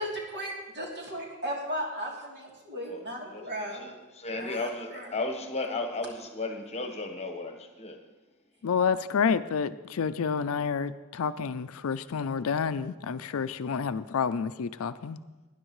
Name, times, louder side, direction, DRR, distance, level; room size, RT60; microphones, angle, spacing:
voice 1, 0.0-4.0 4.3-5.1, equal, 55° right, -2 dB, 3.0 m, -36 dB
voice 2, 3.7-8.0, left 3 dB, 30° left, 5 dB, 1.1 m, -34 dB
voice 3, 8.6-15.2, left 6 dB, 70° left, 13 dB, 0.4 m, -29 dB
18.5 x 10.5 x 3.1 m, 1.2 s
head